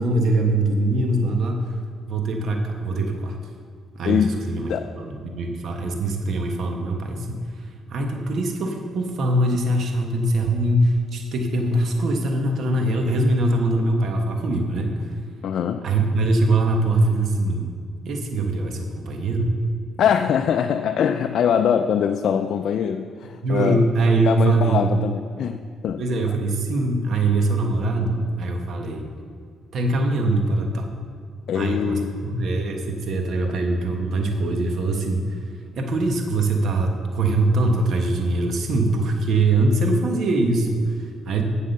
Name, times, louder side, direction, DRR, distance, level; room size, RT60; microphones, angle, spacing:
voice 1, 0.0-1.7 2.1-3.4 3.9-4.7 5.0-15.2 15.8-17.7 18.0-19.5 23.4-24.9 26.0-29.1 29.7-30.9 31.5-35.4 35.7-41.4, right 2 dB, 65° right, 3 dB, 1.2 m, -22 dB
voice 2, 4.0-4.4 4.7-4.9 15.4-15.9 20.0-23.8 24.3-26.0 31.5-32.2, left 8 dB, 70° left, 6 dB, 0.4 m, -23 dB
8.2 x 7.5 x 6.5 m, 2.1 s
cardioid pair, 90°, 0 cm